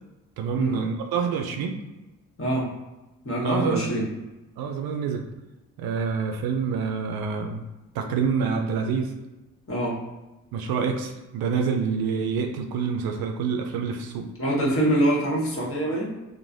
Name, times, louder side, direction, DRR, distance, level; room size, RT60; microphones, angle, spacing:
voice 1, 0.4-1.8 3.4-4.0 4.6-5.2 5.8-7.6 7.9-9.1 10.5-14.3, right 6 dB, 60° right, 4 dB, 0.5 m, -27 dB
voice 2, 3.2-4.0 9.7-10.0 14.4-16.1, right 1 dB, 30° left, -4 dB, 1.4 m, -24 dB
3.0 x 2.2 x 2.6 m, 1.0 s
hypercardioid pair, 50°, 41 cm